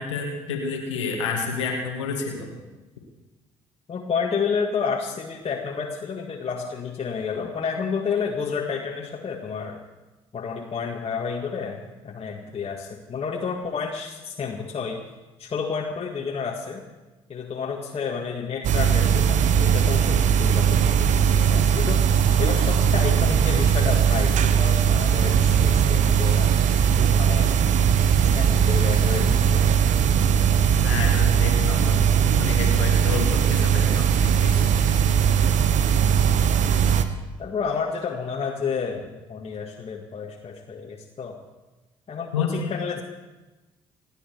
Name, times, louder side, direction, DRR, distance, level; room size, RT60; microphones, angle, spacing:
voice 1, 0.0-2.5 30.6-35.0 42.3-42.7, left 4 dB, 80° left, 1 dB, 1.9 m, -30 dB
voice 2, 3.9-9.8 10.3-15.0 15.4-16.8 17.3-26.6 27.1-27.5 28.2-29.7 37.4-41.4 42.1-43.0, left 5 dB, 40° left, -2 dB, 1.9 m, -30 dB
sound 1, 18.6-37.0, right 8 dB, 55° right, 1.0 m, -19 dB
27.5 x 9.2 x 4.6 m, 1.1 s
figure-of-eight pair, 45°, 15 cm